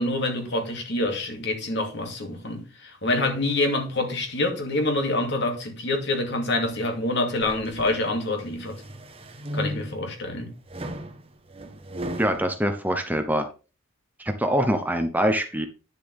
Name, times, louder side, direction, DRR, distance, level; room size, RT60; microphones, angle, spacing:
voice 1, 0.0-8.8 9.5-10.5, left 2 dB, 55° left, 2.4 m, -26 dB
sound 1, 7.4-8.0 8.5-10.1 10.7-12.4, equal, 30° right, 1.1 m, -35 dB
voice 2, 12.2-13.5 14.2-15.7, equal, 10° right, 0.9 m, -24 dB
10.0 x 7.0 x 3.5 m
head